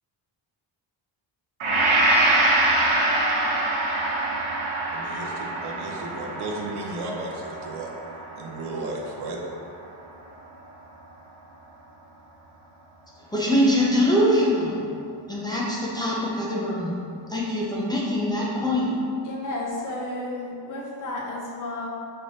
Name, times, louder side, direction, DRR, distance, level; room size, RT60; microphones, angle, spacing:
Gong, 1.6-9.6, right 2 dB, 80° right, 0.9 m, -24 dB
voice 1, 4.9-7.9 8.4-9.4, right 2 dB, 55° right, -1 dB, 0.7 m, -34 dB
voice 2, 13.3-14.8 15.3-16.9 17.3-18.9 20.7-20.8, equal, 10° left, -6 dB, 0.4 m, -23 dB
voice 3, 19.2-21.9, left 2 dB, 40° left, -3 dB, 0.8 m, -32 dB
5.6 x 3.2 x 2.7 m, 2.5 s
wide cardioid pair, 175°, 48 cm